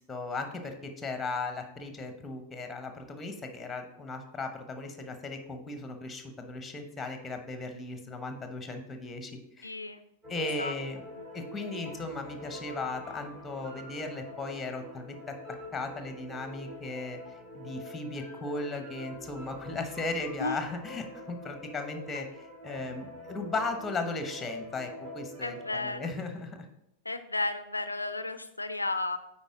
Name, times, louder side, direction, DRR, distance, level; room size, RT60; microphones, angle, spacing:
voice 1, 0.0-9.7 10.3-11.1 11.3-15.4 15.7-26.7, left 3 dB, 15° left, 6 dB, 1.0 m, -37 dB
voice 2, 9.6-10.0 10.6-10.7 20.4-20.6 22.1-22.2 25.4-26.1 27.1-29.2, left 2 dB, 80° left, 11 dB, 0.4 m, -33 dB
sound 1, 10.2-26.0, left 1 dB, 30° right, 2.5 m, -45 dB
9.3 x 4.3 x 3.7 m, 0.82 s
figure-of-eight pair, 90°, 0 cm